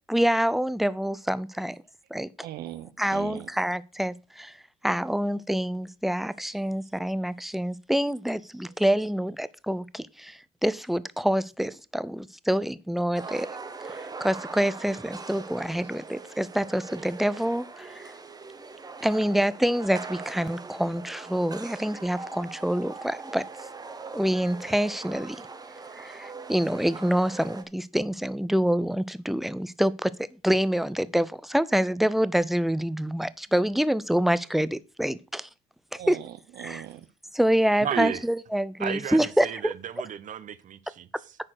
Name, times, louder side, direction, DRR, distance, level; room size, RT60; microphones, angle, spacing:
voice 1, 0.1-1.8 2.1-2.3 3.0-4.5 4.8-13.5 13.8-13.9 14.2-18.0 19.0-23.4 24.1-25.4 26.0-30.1 30.4-35.5 35.9-36.2 36.6-36.8 37.3-39.5, equal, ahead, 0.5 m, -26 dB
voice 2, 2.4-3.5 25.1-25.2 36.0-37.1, right 13 dB, 70° right, 0.7 m, -40 dB
sound 1, 13.1-27.6, right 4 dB, 25° right, 1.2 m, -41 dB
voice 3, 37.8-38.2 38.8-41.4, right 9 dB, 50° right, 1.0 m, -33 dB
9.9 x 4.4 x 6.5 m
cardioid pair, 110°, 17 cm